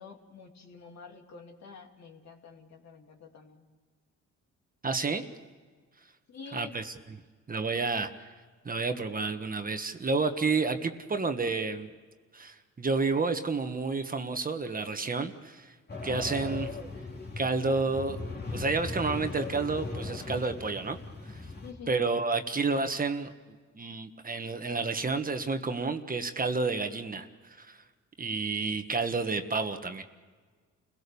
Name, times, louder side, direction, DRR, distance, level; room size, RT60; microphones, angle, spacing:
voice 1, 0.0-3.7 6.3-6.8 21.6-22.0, left 5 dB, 60° left, 3 dB, 3.0 m, -48 dB
voice 2, 4.8-5.3 6.5-7.2 7.5-8.1 8.6-11.9 12.3-15.7 16.0-16.7 17.4-18.2 18.5-21.0 21.3-21.4 21.9-23.3 23.7-27.3 27.6-27.8 28.2-30.0, right 4 dB, 30° right, 7 dB, 1.5 m, -30 dB
sound 1, 15.9-21.7, left 3 dB, 35° left, 3.4 m, -38 dB
29.5 x 17.5 x 7.0 m, 1.5 s
cardioid pair, 90°, 30 cm